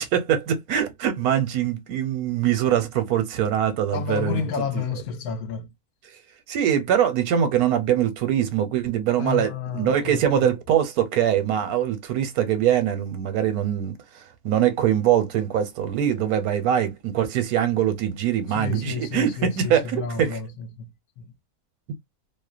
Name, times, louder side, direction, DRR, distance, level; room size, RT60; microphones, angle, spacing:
voice 1, 0.0-4.5 6.1-6.2 6.5-20.4, right 9 dB, 85° right, 1.1 m, -23 dB
voice 2, 3.9-5.7 9.2-10.5 18.5-21.3, left 6 dB, 80° left, 1.1 m, -31 dB
2.8 x 2.1 x 2.3 m
omnidirectional pair, 1.6 m